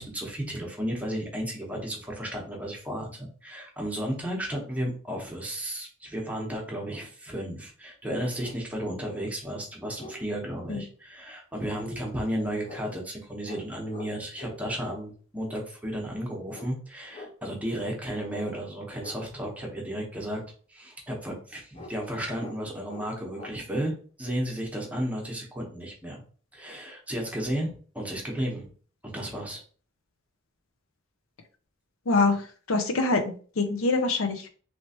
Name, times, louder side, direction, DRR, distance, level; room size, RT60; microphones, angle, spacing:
voice 1, 0.0-20.4 20.7-26.2 26.5-28.7 29.0-29.6, equal, 5° right, -1 dB, 0.9 m, -33 dB
sound 1, 7.7-7.8 8.3-8.6 9.2-9.3 9.6-10.2 11.7-11.9 12.6-12.8 13.4-13.6 13.9-14.1 14.4-15.0 16.5-16.7 17.1-17.3 18.3-18.5 19.0-19.2 21.7-21.9 22.4-22.6 22.9-23.1 23.3-23.5, left 2 dB, 30° left, 0.6 m, -44 dB
voice 2, 32.1-34.5, left 3 dB, 90° left, 6 dB, 0.6 m, -25 dB
3.2 x 3.0 x 2.8 m, 0.41 s
head